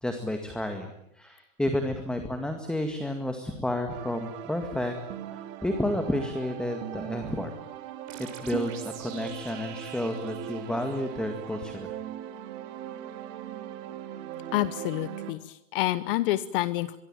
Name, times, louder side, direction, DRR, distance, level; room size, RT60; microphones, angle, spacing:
voice 1, 0.0-4.9 5.3-7.5 8.2-11.9, left 1 dB, ahead, 6 dB, 2.0 m, -31 dB
sound 1, 3.9-15.3, right 11 dB, 35° right, 3.0 m, -39 dB
sound 2, 8.1-11.6, right 9 dB, 60° right, 6.7 m, -47 dB
voice 2, 14.5-17.0, left 16 dB, 40° left, 15 dB, 1.0 m, -28 dB
25.0 x 23.0 x 9.0 m, 0.78 s
supercardioid pair, 155°, 40 cm